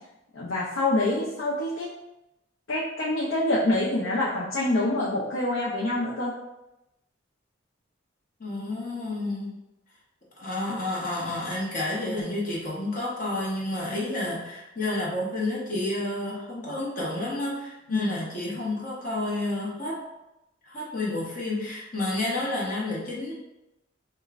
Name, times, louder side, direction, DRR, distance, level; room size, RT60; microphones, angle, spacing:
voice 1, 0.3-1.9 2.7-6.3 10.7-10.8 17.9-18.1, left 2 dB, 85° left, -6 dB, 0.6 m, -26 dB
voice 2, 8.4-9.6 10.4-20.0 20.6-23.3, left 2 dB, 45° left, -5 dB, 1.0 m, -30 dB
5.1 x 2.3 x 2.4 m, 0.93 s
head